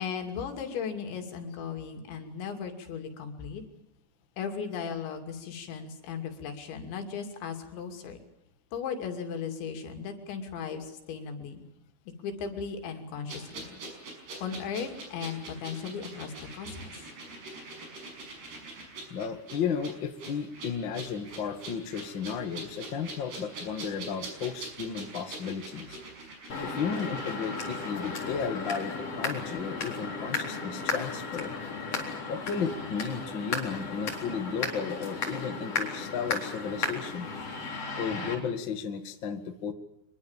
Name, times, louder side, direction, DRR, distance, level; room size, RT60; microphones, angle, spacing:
voice 1, 0.0-3.6 4.4-8.2 8.7-11.6 12.2-13.8 14.4-16.9, left 6 dB, 80° left, 5 dB, 5.1 m, -36 dB
sound 1, 13.3-28.8 29.0-29.2, right 2 dB, 65° right, 7.8 m, -44 dB
voice 2, 19.1-26.0 26.6-31.6 32.3-37.3 38.0-39.7, left 6 dB, 55° left, 7 dB, 1.3 m, -34 dB
sound 2, 26.5-38.3, left 3 dB, 35° left, 4.6 m, -35 dB
25.0 x 22.0 x 7.4 m, 0.84 s
omnidirectional pair, 5.1 m